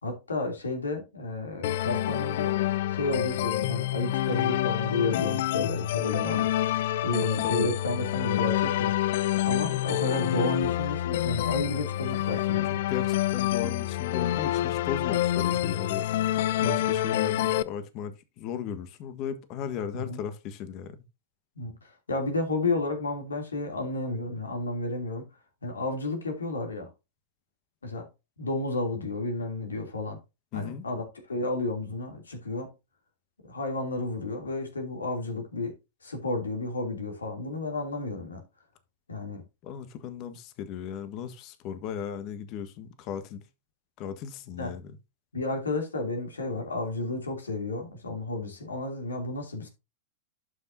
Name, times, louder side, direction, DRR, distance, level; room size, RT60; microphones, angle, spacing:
voice 1, 0.0-2.5 2.9-6.6 7.0-9.0 9.4-12.8 16.6-16.8 19.9-20.2 21.6-25.2 25.6-26.9 27.8-28.1 28.4-30.2 30.5-32.7 33.4-35.7 36.0-38.4 39.1-39.4 44.6-44.8 45.3-49.7, left 2 dB, 85° left, 3.0 m, -32 dB
sound 1, 1.6-17.6, left 13 dB, 60° left, 0.6 m, -27 dB
voice 2, 7.2-7.7 12.6-16.1 16.6-21.0 30.5-30.9 39.6-43.4 44.0-45.0, left 8 dB, 45° left, 1.5 m, -36 dB
11.5 x 5.8 x 2.7 m
hypercardioid pair, 100°, 0 cm